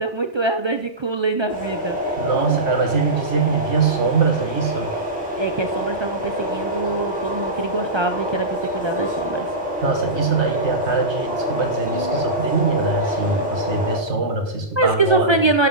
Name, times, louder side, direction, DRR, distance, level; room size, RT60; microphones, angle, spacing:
voice 1, 0.0-2.0 2.3-2.6 5.4-9.5 14.8-15.7, right 3 dB, 45° right, 7 dB, 0.3 m, -23 dB
sound 1, 1.5-14.0, equal, 5° right, 3.2 m, -26 dB
voice 2, 2.2-4.9 9.8-15.3, right 4 dB, 75° right, 4 dB, 1.9 m, -22 dB
11.0 x 6.6 x 3.8 m, 0.77 s
omnidirectional pair, 1.2 m